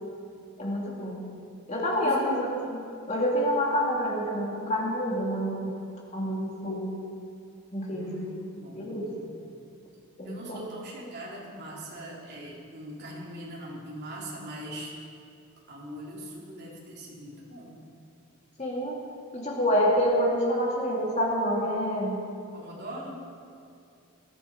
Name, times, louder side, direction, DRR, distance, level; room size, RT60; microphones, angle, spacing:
voice 1, 0.6-1.3 1.7-5.7 6.1-7.0 7.7-8.2 8.7-9.1 10.2-10.6 18.6-19.0 19.3-22.2, equal, 30° left, -3 dB, 2.4 m, -27 dB
voice 2, 1.8-2.2 7.9-9.6 10.2-14.9 15.7-17.8 22.5-23.3, right 1 dB, 50° right, -5 dB, 3.7 m, -41 dB
20.0 x 11.5 x 5.1 m, 2.5 s
head